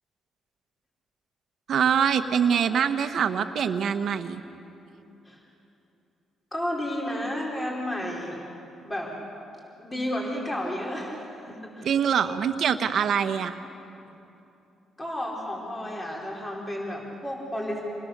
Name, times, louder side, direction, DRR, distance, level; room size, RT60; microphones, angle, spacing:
voice 1, 1.7-4.4 11.8-13.6, right 7 dB, 65° right, 8 dB, 1.3 m, -24 dB
voice 2, 6.5-8.4 8.8-9.1 9.8-11.9 15.0-17.8, left 1 dB, 15° left, -2 dB, 4.7 m, -32 dB
28.0 x 20.5 x 6.8 m, 2.8 s
cardioid pair, 90°, 0 cm